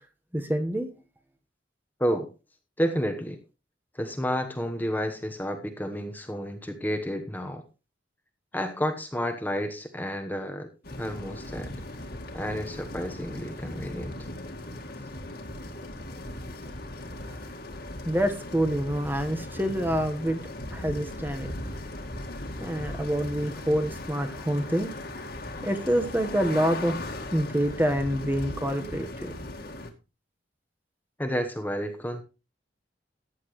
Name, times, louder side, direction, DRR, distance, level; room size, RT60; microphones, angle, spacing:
voice 1, 0.3-0.9 18.0-20.4 20.7-21.5 22.6-24.9 25.6-27.0 27.3-29.3, equal, 10° right, 7 dB, 1.2 m, -27 dB
voice 2, 2.8-3.4 3.9-7.6 8.5-10.7 11.0-11.7 12.3-14.3 31.2-32.2, equal, 10° left, 5 dB, 1.1 m, -30 dB
sound 1, 10.8-29.9, left 1 dB, 55° left, 1.9 m, -38 dB
14.5 x 9.7 x 3.1 m, 0.30 s
head